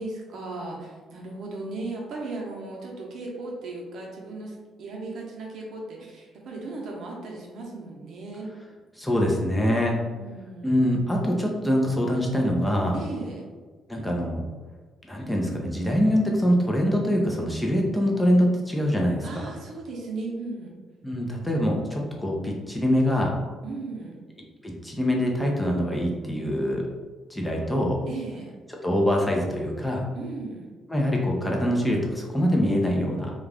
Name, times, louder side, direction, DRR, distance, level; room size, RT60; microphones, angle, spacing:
voice 1, 0.0-8.5 9.7-10.7 12.9-13.4 19.2-20.7 23.6-24.2 28.1-28.5 30.1-30.7, right 3 dB, 70° right, -1 dB, 0.7 m, -36 dB
voice 2, 9.0-9.9 10.6-13.0 13.9-14.4 15.0-19.5 21.0-23.3 24.6-26.8 27.3-28.0 28.8-30.0 30.9-33.3, equal, 10° left, -1 dB, 0.6 m, -24 dB
2.4 x 2.3 x 3.3 m, 1.4 s
cardioid pair, 90°, 0 cm